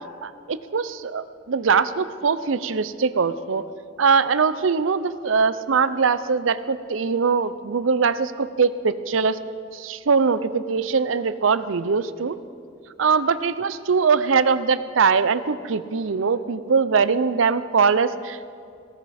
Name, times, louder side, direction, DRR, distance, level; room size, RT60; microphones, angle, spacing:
voice 1, 0.2-3.6 4.0-9.4 9.7-12.4 13.0-18.5, right 5 dB, 80° right, 14 dB, 0.6 m, -22 dB
17.0 x 15.0 x 4.3 m, 2.4 s
head